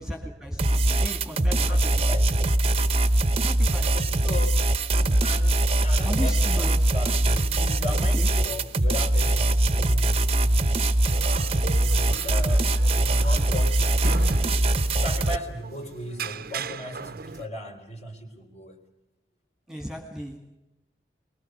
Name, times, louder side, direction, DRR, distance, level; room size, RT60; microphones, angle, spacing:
voice 1, 0.0-1.9 3.4-3.9 6.0-6.7 8.1-8.3 19.7-20.4, right 1 dB, 5° right, 4 dB, 2.0 m, -35 dB
sound 1, 0.6-15.4, right 1 dB, 35° right, 1.0 m, -22 dB
voice 2, 1.5-2.3 3.9-4.7 5.2-10.9 11.7-14.5 14.9-18.9, left 1 dB, 40° left, 3 dB, 4.0 m, -37 dB
sound 2, 10.5-17.5, right 4 dB, 55° right, 0.8 m, -38 dB
24.0 x 21.5 x 6.7 m, 0.91 s
head